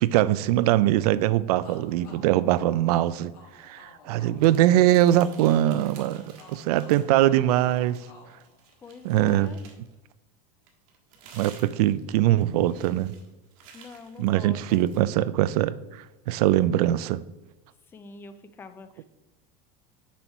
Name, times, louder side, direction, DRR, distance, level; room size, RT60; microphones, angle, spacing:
voice 1, 0.0-3.3 3.6-8.0 9.0-9.5 11.3-13.1 14.2-17.2, right 13 dB, 80° right, 17 dB, 0.5 m, -22 dB
sound 1, 1.6-9.2, left 3 dB, 75° left, 2.0 m, -52 dB
sound 2, 4.4-7.3 7.6-9.9 10.7-15.0, right 6 dB, 65° right, 1.6 m, -52 dB
voice 2, 8.8-9.6 13.7-14.9 17.9-19.0, left 4 dB, 10° left, 10 dB, 0.4 m, -44 dB
7.1 x 4.6 x 5.4 m, 0.98 s
supercardioid pair, 170°, 19 cm